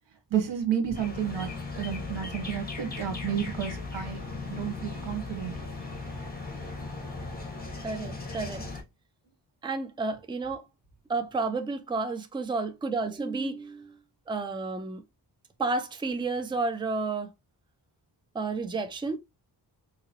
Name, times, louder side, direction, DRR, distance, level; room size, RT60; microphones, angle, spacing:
voice 1, 0.3-4.2 4.5-5.5, right 9 dB, 90° right, 1.1 m, -31 dB
sound 1, 0.9-8.8, left 3 dB, 20° left, 1.2 m, -37 dB
voice 2, 7.8-8.6 9.6-10.6 11.1-13.9 14.3-15.0 15.6-17.3 18.3-19.2, right 3 dB, 10° right, 0.4 m, -31 dB
3.8 x 2.9 x 2.9 m
wide cardioid pair, 130°, 42 cm